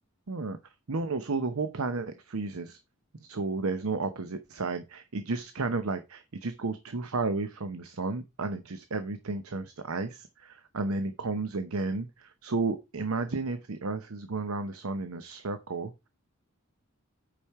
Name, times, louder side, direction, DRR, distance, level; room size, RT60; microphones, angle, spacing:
voice 1, 0.3-2.8 3.1-16.1, right 3 dB, 85° right, 10 dB, 0.8 m, -33 dB
8.7 x 5.1 x 4.7 m, 0.24 s
head